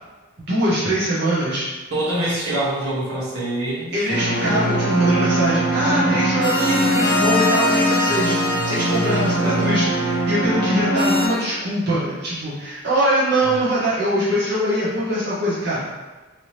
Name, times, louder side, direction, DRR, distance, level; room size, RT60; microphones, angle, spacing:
voice 1, 0.4-1.6 2.3-2.4 3.9-15.9, right 1 dB, 50° right, -9 dB, 0.8 m, -22 dB
voice 2, 1.9-3.9 13.4-13.5, right 1 dB, 85° right, -8 dB, 1.3 m, -24 dB
sound 1, 4.1-11.3, equal, 5° right, 1.0 m, -20 dB
3.3 x 2.7 x 3.0 m, 1.2 s
head